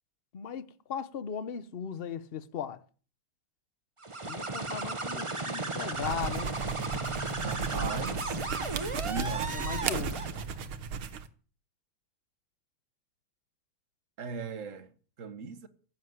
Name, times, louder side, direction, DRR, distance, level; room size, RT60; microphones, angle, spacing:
voice 1, 0.3-2.8 4.2-6.6 9.5-10.2, left 7 dB, 50° left, 0.7 m, -38 dB
sound 1, 4.0-10.5, right 2 dB, 20° right, 1.0 m, -35 dB
sound 2, 5.9-11.3, right 6 dB, 80° right, 2.0 m, -35 dB
voice 2, 7.4-8.4 9.0-9.5 14.2-15.7, right 5 dB, 40° right, 1.7 m, -38 dB
15.0 x 7.9 x 9.7 m
omnidirectional pair, 2.3 m